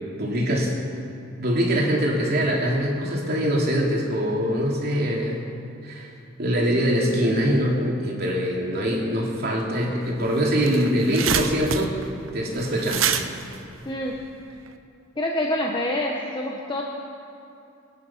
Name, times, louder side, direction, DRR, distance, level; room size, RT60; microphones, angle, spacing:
voice 1, 0.2-0.7 1.4-5.4 5.8-6.1 6.4-11.9 12.3-13.1, equal, 50° right, -3 dB, 3.1 m, -23 dB
sound 1, 10.1-10.2 10.4-14.7, right 7 dB, 85° right, 0.8 m, -28 dB
voice 2, 13.9-14.2 15.2-16.8, left 1 dB, 25° left, -1 dB, 1.0 m, -26 dB
24.0 x 10.0 x 5.7 m, 2.7 s
head